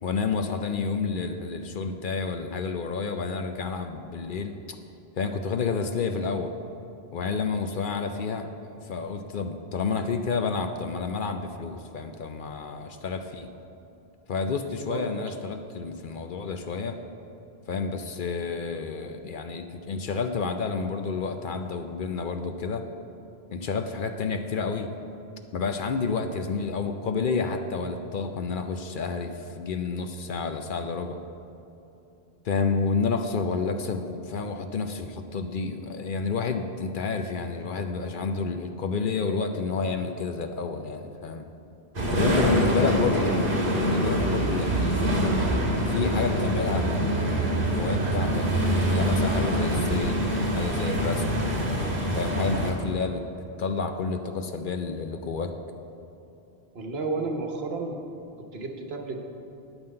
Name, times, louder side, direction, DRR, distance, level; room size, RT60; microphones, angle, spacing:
voice 1, 0.0-4.5 5.2-6.5 7.1-13.5 14.3-17.0 17.7-22.8 23.5-24.9 25.5-31.2 32.4-41.5 42.1-45.1 45.8-48.5 48.8-51.4 52.1-53.2 53.6-55.6, left 4 dB, 60° left, 6 dB, 0.7 m, -30 dB
sound 1, 41.9-52.7, right 1 dB, 55° right, 1.7 m, -25 dB
voice 2, 42.4-42.9 56.7-58.0 58.5-59.2, right 3 dB, 75° right, 3 dB, 1.2 m, -32 dB
9.0 x 5.6 x 7.7 m, 2.9 s
omnidirectional pair, 1.1 m